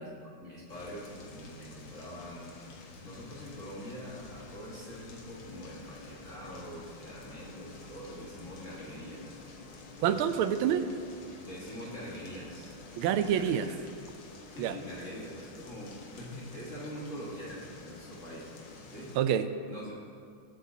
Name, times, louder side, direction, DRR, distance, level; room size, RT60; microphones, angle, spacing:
voice 1, 0.0-9.5 9.9-10.2 11.4-12.8 13.1-13.8 14.5-18.5 18.8-19.2 19.7-19.9, equal, 40° left, -7 dB, 2.0 m, -44 dB
sound 1, 0.7-19.2, left 3 dB, 85° left, 2.1 m, -49 dB
voice 2, 10.0-10.9 13.0-13.7 14.6-14.8 19.2-19.5, right 9 dB, 90° right, 10 dB, 1.5 m, -27 dB
19.5 x 8.0 x 2.8 m, 2.3 s
omnidirectional pair, 2.3 m